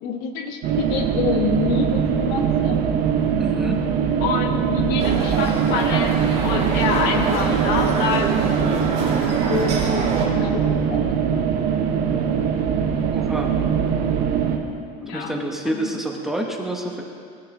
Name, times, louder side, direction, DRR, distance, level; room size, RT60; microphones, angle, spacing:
voice 1, 0.0-2.9 4.2-6.2 6.4-11.2 11.5-11.6 11.9-12.3 12.8-13.2 13.5-13.7 15.0-15.5 15.7-15.9, left 6 dB, 65° left, 5 dB, 1.1 m, -28 dB
sound 1, 0.6-14.6, right 7 dB, 60° right, 1.2 m, -22 dB
voice 2, 3.4-3.9 13.1-13.5 15.1-17.0, right 1 dB, ahead, 0 dB, 1.1 m, -28 dB
sound 2, 5.0-10.3, right 4 dB, 35° right, 2.9 m, -27 dB
16.5 x 9.4 x 3.7 m, 2.3 s
cardioid pair, 140°, 18 cm